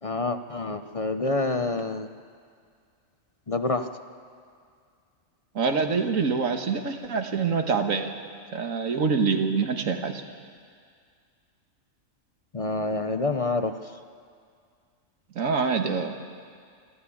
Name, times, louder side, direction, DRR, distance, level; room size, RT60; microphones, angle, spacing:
voice 1, 0.0-2.1 3.5-3.9 12.5-13.9, left 3 dB, 35° left, 9 dB, 0.5 m, -27 dB
voice 2, 5.6-8.1 8.5-10.2 15.4-16.2, right 5 dB, 80° right, 5 dB, 1.7 m, -25 dB
26.0 x 12.5 x 8.6 m, 2.1 s
omnidirectional pair, 1.4 m